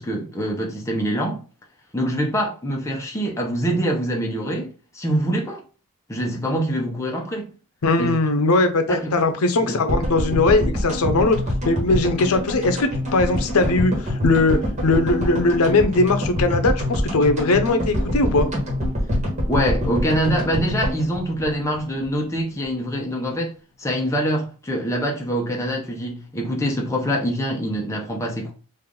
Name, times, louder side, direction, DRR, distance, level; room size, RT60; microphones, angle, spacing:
voice 1, 0.0-1.4 1.9-5.6 6.1-7.5 8.0-8.2 8.9-9.1 9.7-9.8 19.5-23.5 23.8-28.5, equal, 15° left, 0.6 m, -24 dB
voice 2, 7.8-11.4 11.7-18.5, left 2 dB, 85° left, 0.6 m, -20 dB
sound 1, 9.9-22.1 22.4-22.5 22.6-22.7, left 1 dB, 30° right, 1.3 m, -25 dB
3.3 x 2.5 x 3.7 m
head